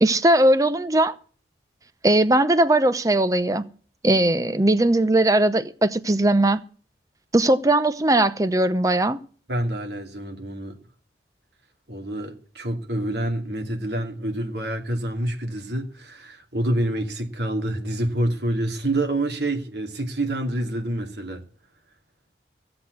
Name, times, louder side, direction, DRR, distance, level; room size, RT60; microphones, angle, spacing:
voice 1, 0.0-1.2 2.0-3.6 4.0-6.6 7.3-9.2, right 1 dB, 20° right, 0.7 m, -19 dB
voice 2, 9.5-10.8 11.9-21.4, right 1 dB, 70° right, 2.5 m, -27 dB
15.5 x 7.9 x 8.2 m
head